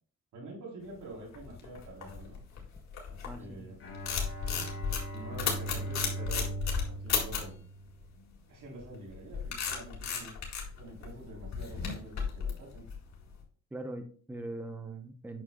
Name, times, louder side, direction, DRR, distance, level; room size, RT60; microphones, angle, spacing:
voice 1, 0.3-2.4 3.1-3.8 4.5-4.8 5.1-6.5 6.8-7.6 8.5-10.4 10.8-12.8, right 1 dB, 75° right, -1 dB, 3.4 m, -46 dB
sound 1, 1.1-3.5 3.8-7.6 8.8-13.3, left 6 dB, 65° left, 2.0 m, -34 dB
voice 2, 3.2-3.7 13.7-15.4, right 2 dB, 5° right, 7 dB, 0.7 m, -41 dB
Bowed string instrument, 3.8-8.2, right 2 dB, 45° left, 2.3 m, -40 dB
8.5 x 6.2 x 2.2 m, 0.44 s
cardioid pair, 90°, 30 cm